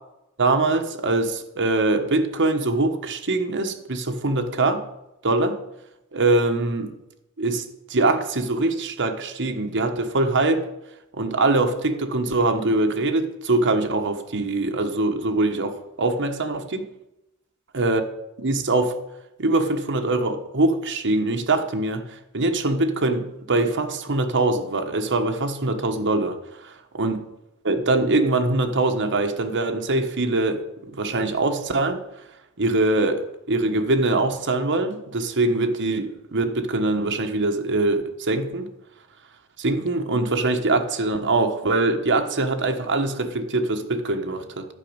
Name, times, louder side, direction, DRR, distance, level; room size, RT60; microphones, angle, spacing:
voice 1, 0.4-4.8 5.2-5.6 6.1-6.9 7.4-10.7 11.1-16.9 17.7-18.1 18.4-19.0 19.4-27.2 27.6-32.0 32.6-38.7 39.6-44.7, right 2 dB, 55° right, 5 dB, 1.3 m, -23 dB
11.5 x 5.3 x 8.7 m, 0.90 s
head